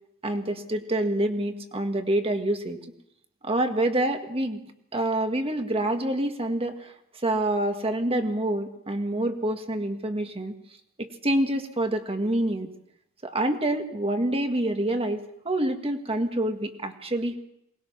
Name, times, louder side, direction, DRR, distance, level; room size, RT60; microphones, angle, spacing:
voice 1, 0.2-2.8 3.4-4.6 4.9-6.9 7.2-10.5 11.0-12.7 13.2-17.4, right 1 dB, 25° right, 6 dB, 1.7 m, -27 dB
23.0 x 19.5 x 5.9 m, 0.78 s
head